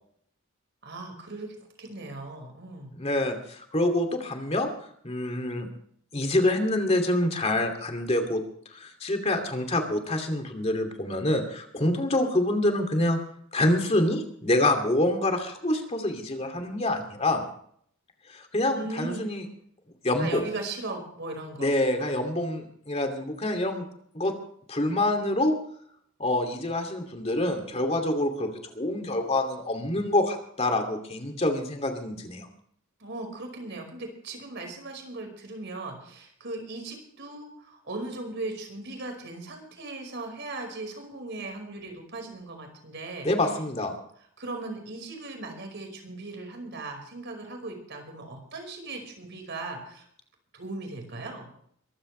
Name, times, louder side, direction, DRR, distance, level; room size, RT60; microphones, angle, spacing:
voice 1, 0.8-2.9 18.7-19.3 20.2-21.7 22.0-22.2 33.0-43.3 44.4-50.1 50.5-51.5, right 2 dB, 55° right, 4 dB, 5.2 m, -38 dB
voice 2, 3.0-4.7 5.0-5.7 6.1-8.4 8.7-13.2 13.5-17.4 18.3-19.4 20.0-20.4 21.6-23.9 24.1-24.3 24.7-25.6 26.2-32.5 43.2-43.9, left 1 dB, 30° left, 5 dB, 2.6 m, -26 dB
23.5 x 15.0 x 3.3 m, 0.64 s
head